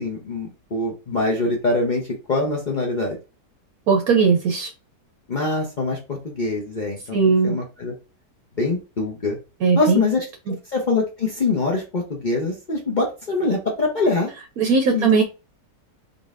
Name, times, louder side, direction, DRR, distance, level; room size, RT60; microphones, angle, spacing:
voice 1, 0.0-2.0 2.3-3.2 5.3-7.2 7.4-7.9 8.6-9.4 9.8-10.2 10.7-14.3 14.9-15.1, left 3 dB, 50° left, -2 dB, 0.5 m, -23 dB
voice 2, 3.9-4.7 7.1-7.6 9.6-10.0 10.5-10.6 14.6-15.2, right 5 dB, 65° right, 4 dB, 1.0 m, -18 dB
3.9 x 3.6 x 2.4 m, 0.30 s
omnidirectional pair, 1.9 m